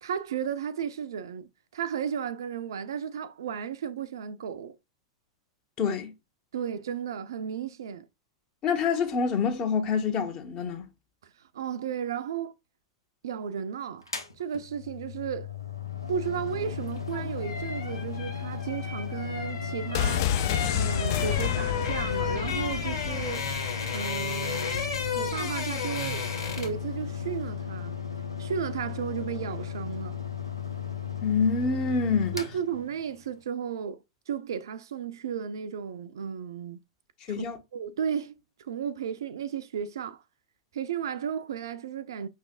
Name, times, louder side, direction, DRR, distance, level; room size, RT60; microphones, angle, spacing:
voice 1, 0.0-4.8 6.5-8.1 11.5-12.5 13.2-14.1 14.4-15.5 16.1-20.3 20.7-23.5 23.9-26.3 26.6-27.9 28.4-30.2 32.3-34.0 34.3-36.8 37.4-37.5 37.7-38.3 38.6-40.2 40.7-42.3, right 8 dB, 65° right, 0.5 m, -34 dB
voice 2, 5.8-6.1 8.6-10.9 31.2-32.4 37.3-37.6, left 5 dB, 35° left, 1.2 m, -26 dB
Mechanical fan, 14.0-33.4, left 7 dB, 85° left, 0.8 m, -36 dB
sound 1, 16.9-26.9 27.1-27.4, left 5 dB, 70° left, 1.9 m, -34 dB
sound 2, 19.9-23.7 24.0-24.1, left 11 dB, 50° left, 0.4 m, -29 dB
5.7 x 3.2 x 2.4 m
figure-of-eight pair, 95°, 2 cm